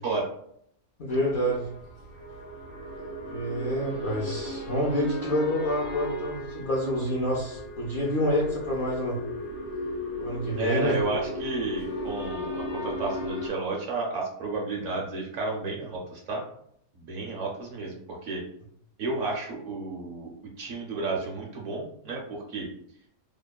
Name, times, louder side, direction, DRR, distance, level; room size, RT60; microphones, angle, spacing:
voice 1, 1.0-1.7 3.3-9.2 10.2-11.0, equal, 70° left, -4 dB, 0.5 m, -28 dB
sound 1, 1.1-13.5, left 1 dB, 85° left, 1.3 m, -36 dB
voice 2, 10.6-16.4 16.9-18.4 19.0-22.7, right 3 dB, 65° right, -1 dB, 0.9 m, -32 dB
2.9 x 2.1 x 2.2 m, 0.69 s
omnidirectional pair, 1.5 m